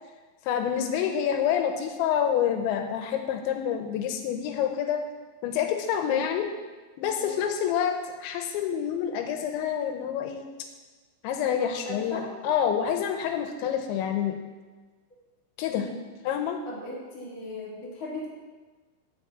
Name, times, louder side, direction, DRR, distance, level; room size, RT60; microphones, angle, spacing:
voice 1, 0.5-5.0 5.4-6.5 7.0-10.7 11.2-14.4 15.6-15.9 16.2-16.6, left 9 dB, 80° left, 5 dB, 3.0 m, -27 dB
voice 2, 11.4-12.3 15.7-16.0 16.6-18.3, left 1 dB, 40° left, -4 dB, 1.2 m, -37 dB
7.5 x 6.6 x 8.0 m, 1.3 s
omnidirectional pair, 5.4 m